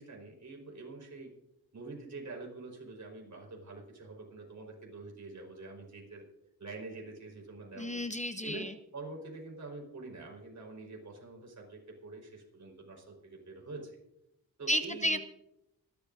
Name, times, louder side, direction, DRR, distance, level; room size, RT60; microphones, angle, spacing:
voice 1, 0.0-1.3 1.7-6.2 6.6-8.0 8.4-14.0 14.6-15.2, right 3 dB, 50° right, 0 dB, 5.0 m, -46 dB
voice 2, 7.8-8.7 14.7-15.2, equal, 20° left, 9 dB, 0.7 m, -32 dB
25.0 x 12.5 x 2.7 m, 0.86 s
wide cardioid pair, 100°, 36 cm